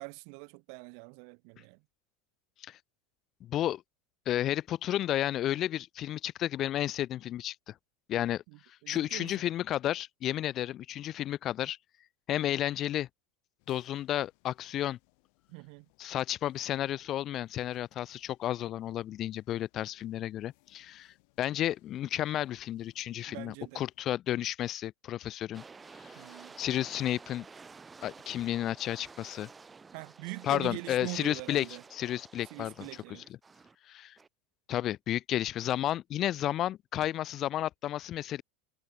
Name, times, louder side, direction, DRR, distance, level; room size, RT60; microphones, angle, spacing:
voice 1, 0.0-1.8 8.5-9.3 15.5-15.9 23.3-23.8 26.1-26.6 29.9-31.8 32.5-33.2, right 40 dB or more, 60° right, 0.6 m, -43 dB
voice 2, 3.4-3.8 4.3-7.7 8.1-11.8 12.3-13.1 13.7-15.0 16.0-25.6 26.0-27.5 28.0-29.5 30.4-33.2 33.8-34.2 34.7-38.4, left 12 dB, 40° left, 0.5 m, -32 dB
sound 1, 13.6-24.2, left 36 dB, 65° left, 3.4 m, -70 dB
sound 2, 25.5-33.7 34.2-34.3, right 4 dB, 15° right, 0.4 m, -52 dB
supercardioid pair, 120°, 0 cm